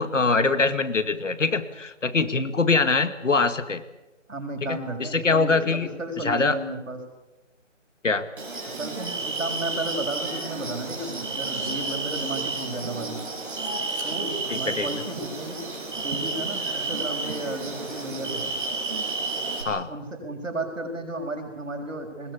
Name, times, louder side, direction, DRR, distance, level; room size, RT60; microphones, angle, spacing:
voice 1, 0.0-3.8 4.7-5.9 6.2-6.6 8.0-8.2 14.5-14.9 19.7-19.9, left 4 dB, 75° left, 11 dB, 2.1 m, -23 dB
voice 2, 4.3-7.0 8.8-13.3 14.0-15.6 16.0-18.4 19.9-22.3, right 2 dB, 80° right, 3 dB, 6.4 m, -33 dB
sound 1, 8.4-19.6, right 3 dB, 40° right, 7.5 m, -31 dB
22.0 x 20.5 x 8.5 m, 1.0 s
hypercardioid pair, 180°, 38 cm